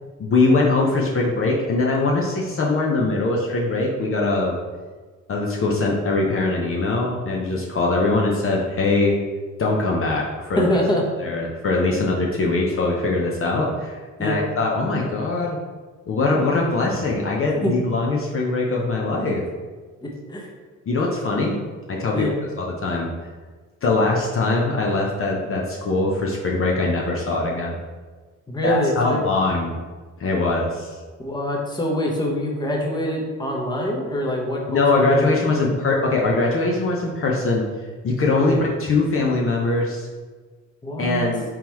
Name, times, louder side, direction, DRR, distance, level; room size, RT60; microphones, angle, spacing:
voice 1, 0.2-4.6 5.3-9.2 9.6-10.6 11.2-15.6 16.1-19.4 20.9-21.6 21.9-22.3 22.6-23.1 23.8-27.7 28.6-29.8 30.2-31.0 34.7-37.7 38.0-40.1 41.0-41.4, left 3 dB, 45° left, -2 dB, 0.7 m, -22 dB
voice 2, 10.6-11.0 14.2-14.4 17.6-17.7 20.0-20.5 22.1-22.4 28.5-29.2 31.2-35.7 38.4-38.6 40.8-41.3, equal, 15° left, -1 dB, 0.9 m, -25 dB
3.7 x 3.0 x 4.6 m, 1.4 s
cardioid pair, 90°, 30 cm